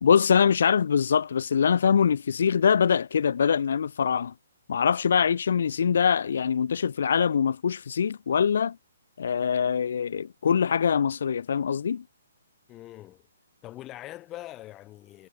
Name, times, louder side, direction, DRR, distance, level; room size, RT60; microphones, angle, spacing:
voice 1, 0.0-4.3 4.7-8.8 9.2-12.0, left 7 dB, 65° left, 1.2 m, -23 dB
voice 2, 12.7-13.2 13.6-15.3, left 15 dB, 20° left, 3.9 m, -42 dB
hypercardioid pair, 150°, 0 cm